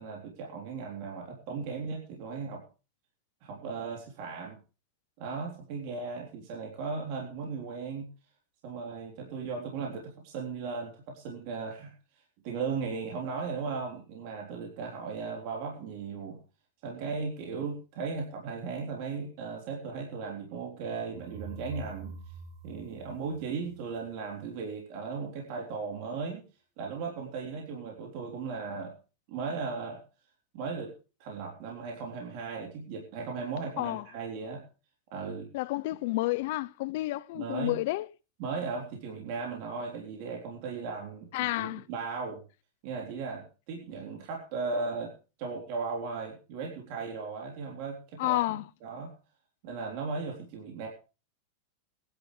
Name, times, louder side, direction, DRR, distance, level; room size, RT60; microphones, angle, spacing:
voice 1, 0.0-2.6 3.4-4.6 5.2-8.1 8.6-11.9 12.4-16.4 16.8-22.2 22.6-26.5 26.8-29.0 29.3-30.0 30.5-30.9 31.2-34.7 35.1-35.5 37.3-37.8 38.4-42.4 42.8-49.1 49.6-50.9, right 4 dB, 50° right, 3.6 m, -37 dB
sound 1, 21.1-24.0, right 4 dB, 30° right, 1.7 m, -45 dB
voice 2, 35.5-38.1 41.3-41.8 48.2-48.6, left 18 dB, 60° left, 0.7 m, -30 dB
22.0 x 10.5 x 3.3 m
supercardioid pair, 150°, 0 cm